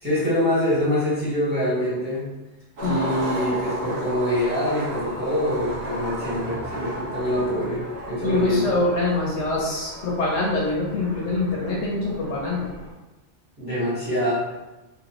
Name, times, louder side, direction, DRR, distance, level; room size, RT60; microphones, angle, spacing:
voice 1, 0.0-2.3 2.8-8.7 13.6-14.5, left 1 dB, 10° right, -10 dB, 1.3 m, -25 dB
Skateboard, 2.8-12.9, right 1 dB, 60° right, 1.1 m, -34 dB
voice 2, 8.2-12.7, left 2 dB, 70° left, -4 dB, 1.0 m, -24 dB
3.0 x 2.6 x 2.9 m, 1.1 s
omnidirectional pair, 1.3 m